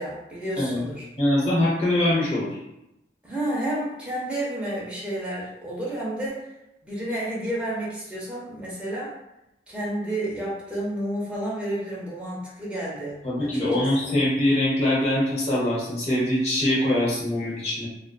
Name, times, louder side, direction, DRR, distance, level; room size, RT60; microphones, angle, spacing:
voice 1, 0.0-1.1 3.2-6.4 6.8-9.1 9.7-13.6, right 1 dB, 5° right, -7 dB, 0.6 m, -30 dB
voice 2, 1.2-2.6 13.2-17.9, left 1 dB, 40° left, -6 dB, 0.7 m, -23 dB
2.4 x 2.3 x 2.2 m, 0.89 s
head